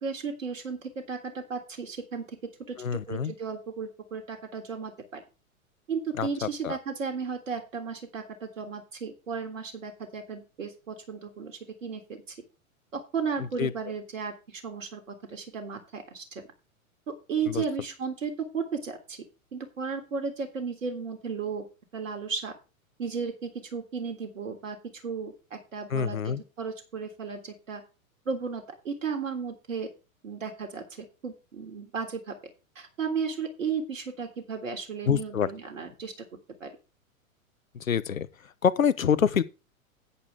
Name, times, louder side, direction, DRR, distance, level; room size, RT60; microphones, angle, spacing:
voice 1, 0.0-2.4 2.7-5.2 5.9-12.4 12.9-16.4 17.1-19.2 19.5-21.7 21.9-22.5 23.0-27.8 28.3-29.9 30.2-32.4 32.8-36.3 36.6-36.7, right 5 dB, 60° right, 3.5 m, -34 dB
voice 2, 2.8-3.3 6.2-6.3 6.6-6.8 13.6-13.7 17.5-17.6 25.9-26.4 35.1-35.5 37.9-38.3 38.6-39.4, left 7 dB, 70° left, 1.1 m, -25 dB
11.0 x 9.7 x 3.5 m
figure-of-eight pair, 100°, 42 cm